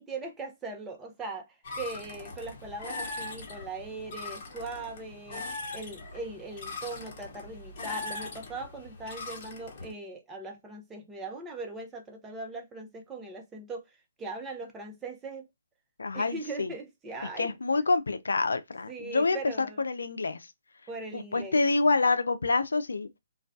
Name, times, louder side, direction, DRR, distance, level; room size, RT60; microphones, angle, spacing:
voice 1, 0.0-5.5 5.7-15.5 16.1-17.5 18.9-19.8 20.9-21.6, right 3 dB, 10° right, 0.5 m, -40 dB
sound 1, 1.6-9.9, left 3 dB, 40° left, 0.9 m, -40 dB
voice 2, 16.0-16.7 17.4-20.5 21.1-23.2, left 3 dB, 90° left, 0.4 m, -27 dB
2.3 x 2.2 x 2.5 m
hypercardioid pair, 150°, 0 cm